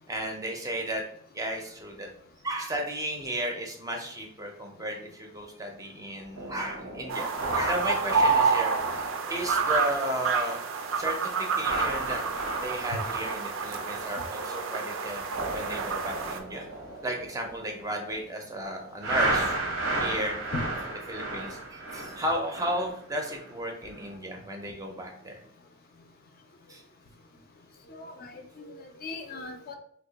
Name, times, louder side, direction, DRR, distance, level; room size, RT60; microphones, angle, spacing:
voice 1, 0.1-1.0 1.3-2.1 2.4-8.8 9.3-10.6 11.0-12.2 12.6-15.2 15.5-16.7 17.0-19.6 19.9-20.4 21.1-25.3 26.7-26.8, right 1 dB, 15° right, 2 dB, 0.4 m, -34 dB
sound 1, 6.3-10.5 10.8-11.1 11.5-14.7 15.1-18.3 19.0-23.5 23.9-24.1, right 2 dB, 90° right, 0.8 m, -34 dB
sound 2, 7.1-16.4, right 5 dB, 75° right, 0.4 m, -29 dB
voice 2, 27.9-29.7, left 3 dB, 45° left, 5 dB, 0.4 m, -39 dB
2.8 x 2.2 x 3.9 m, 0.63 s
head